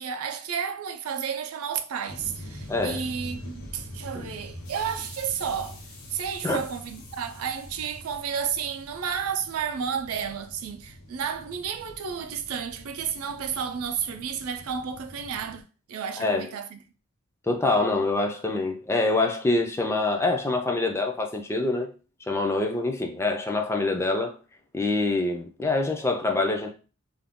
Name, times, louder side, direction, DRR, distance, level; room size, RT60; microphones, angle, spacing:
voice 1, 0.0-5.8 6.1-16.8, right 7 dB, 85° right, 0.4 m, -32 dB
sound 1, 2.1-15.6, left 1 dB, 80° left, 0.8 m, -44 dB
voice 2, 2.7-3.0 4.1-4.3 6.4-6.6 16.2-16.5 17.5-21.9 22.3-24.4 24.7-26.7, left 2 dB, 10° left, 0.3 m, -25 dB
2.4 x 2.2 x 3.5 m
head